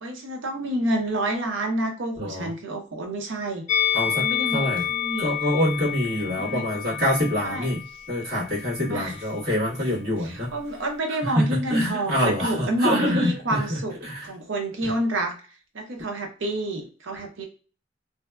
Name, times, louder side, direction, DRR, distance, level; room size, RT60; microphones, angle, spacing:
voice 1, 0.0-3.6 4.1-5.3 6.4-6.6 7.4-7.7 8.9-9.2 10.2-13.9 14.2-15.3 15.7-17.5, right 1 dB, 80° right, 5 dB, 0.7 m, -28 dB
voice 2, 2.2-2.5 3.9-4.2 4.5-4.9 5.2-7.8 8.1-10.5 11.1-14.3, left 1 dB, 55° right, -8 dB, 1.3 m, -25 dB
Musical instrument, 3.7-8.9 9.2-9.4, left 9 dB, 40° left, 0.3 m, -29 dB
2.6 x 2.1 x 2.2 m, 0.37 s
head